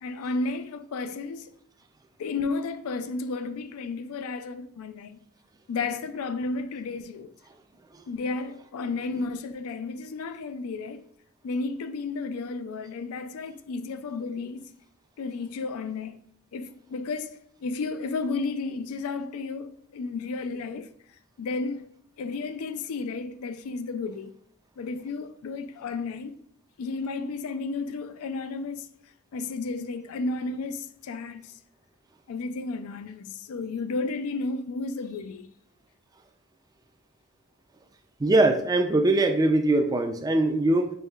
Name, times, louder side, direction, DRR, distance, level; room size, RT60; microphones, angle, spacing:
voice 1, 0.0-1.5 2.2-5.2 5.7-7.3 8.1-11.0 11.4-14.7 15.2-16.2 16.5-20.9 21.4-21.9 22.2-24.3 24.8-26.4 26.8-28.9 29.3-31.5 32.3-35.5, left 3 dB, 80° left, 0.4 m, -32 dB
voice 2, 38.2-40.9, right 2 dB, 15° right, 0.3 m, -22 dB
5.4 x 3.1 x 2.3 m
head